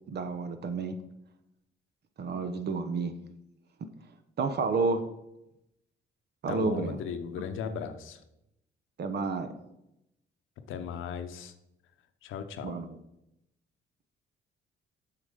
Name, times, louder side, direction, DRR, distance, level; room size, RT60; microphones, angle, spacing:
voice 1, 0.1-1.0 2.2-3.1 4.4-5.0 6.4-7.0 9.0-9.5 12.6-13.0, right 4 dB, 55° right, 9 dB, 1.0 m, -30 dB
voice 2, 6.5-8.2 10.7-11.5 12.2-12.8, left 7 dB, 85° left, 9 dB, 0.8 m, -37 dB
7.9 x 5.9 x 5.2 m, 0.86 s
cardioid pair, 90°, 20 cm